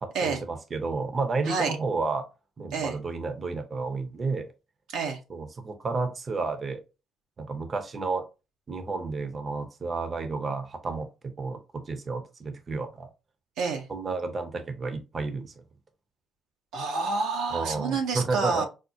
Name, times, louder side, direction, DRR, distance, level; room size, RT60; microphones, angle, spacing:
voice 1, 0.0-2.2 2.6-4.5 5.3-6.8 7.4-8.2 8.7-13.1 13.9-15.6 17.5-18.6, right 4 dB, 40° right, 0.7 m, -31 dB
voice 2, 16.7-18.6, right 4 dB, 80° right, 0.7 m, -28 dB
4.9 x 2.0 x 2.6 m
supercardioid pair, 65°, 0 cm